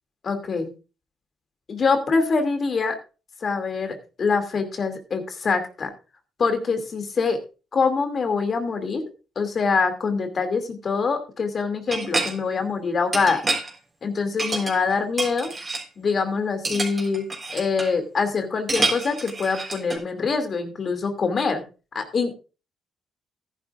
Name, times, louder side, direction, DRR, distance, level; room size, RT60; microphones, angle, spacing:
voice 1, 0.2-0.7 1.7-3.0 3.4-5.9 6.4-7.4 7.7-9.0 9.4-13.4 14.0-15.5 16.0-17.3 17.5-21.6 21.9-22.3, left 4 dB, 45° left, 7 dB, 2.6 m, -24 dB
sound 1, 11.9-12.3 13.1-13.7 14.4-14.9 15.2-15.8 16.6-17.9 18.7-20.0, right 3 dB, 25° right, 3.8 m, -27 dB
14.5 x 11.0 x 2.5 m, 0.33 s
cardioid pair, 90°, 0 cm